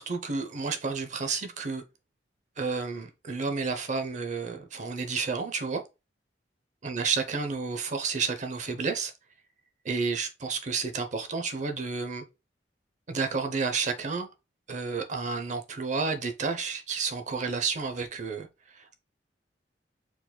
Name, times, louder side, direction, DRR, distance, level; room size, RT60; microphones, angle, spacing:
voice 1, 0.0-1.8 2.6-5.8 6.8-9.1 9.8-12.2 13.1-14.3 14.7-19.0, right 4 dB, 45° right, 0.7 m, -31 dB
4.6 x 3.9 x 2.2 m
head